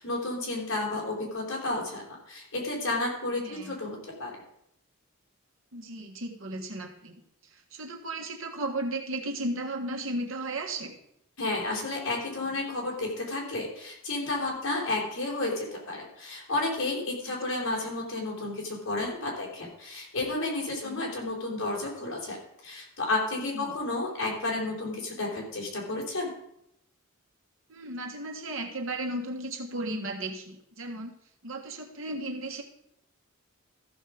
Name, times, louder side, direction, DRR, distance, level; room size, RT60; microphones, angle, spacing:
voice 1, 0.0-4.4 11.4-22.4 22.6-26.3, left 2 dB, 75° left, -2 dB, 3.7 m, -32 dB
voice 2, 3.4-3.7 5.7-7.2 7.5-10.9 20.8-21.0 23.5-23.8 27.7-31.1 31.4-32.6, right 1 dB, 70° right, 3 dB, 1.5 m, -35 dB
14.0 x 6.4 x 5.0 m, 0.76 s
head